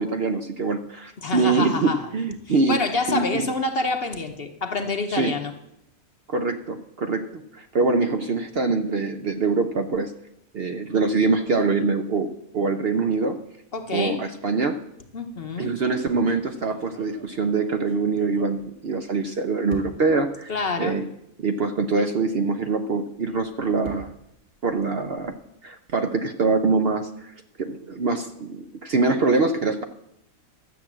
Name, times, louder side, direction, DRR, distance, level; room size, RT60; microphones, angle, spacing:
voice 1, 0.0-2.8 3.1-3.5 5.1-5.3 6.3-10.1 10.5-13.4 13.9-14.8 15.6-20.5 20.8-21.1 21.4-24.1 24.6-25.3 25.6-29.8, right 4 dB, 55° right, 7 dB, 0.8 m, -24 dB
voice 2, 1.2-2.0 2.7-5.5 13.7-14.2 15.1-15.7 20.5-21.0, left 3 dB, 50° left, 7 dB, 1.0 m, -27 dB
sound 1, 16.5-19.2 19.7-20.2 21.0-21.1 21.4-21.5 23.1-25.5, right 3 dB, 70° right, 2.3 m, -45 dB
12.0 x 7.7 x 7.3 m, 0.81 s
omnidirectional pair, 1.5 m